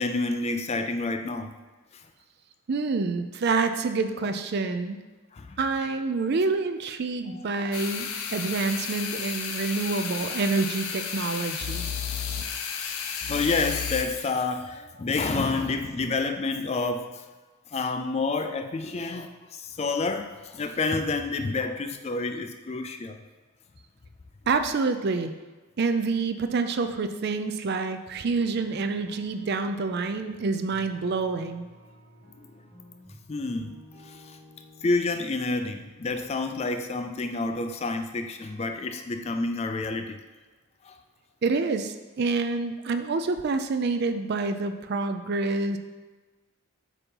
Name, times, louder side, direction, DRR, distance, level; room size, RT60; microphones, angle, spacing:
voice 1, 0.0-1.5 5.3-5.6 12.2-12.3 13.3-17.2 17.7-23.2 33.3-33.7 34.0-34.4 34.8-40.2 40.8-41.0, left 3 dB, 30° left, 7 dB, 0.3 m, -29 dB
voice 2, 2.7-5.0 5.6-11.9 24.5-25.3 25.8-31.7 41.4-45.8, right 4 dB, 45° right, 8 dB, 0.4 m, -27 dB
sound 1, 7.7-14.0, left 7 dB, 75° left, 0.6 m, -32 dB
sound 2, 28.3-37.0, equal, 10° right, 1.5 m, -52 dB
8.2 x 2.9 x 5.3 m, 1.3 s
head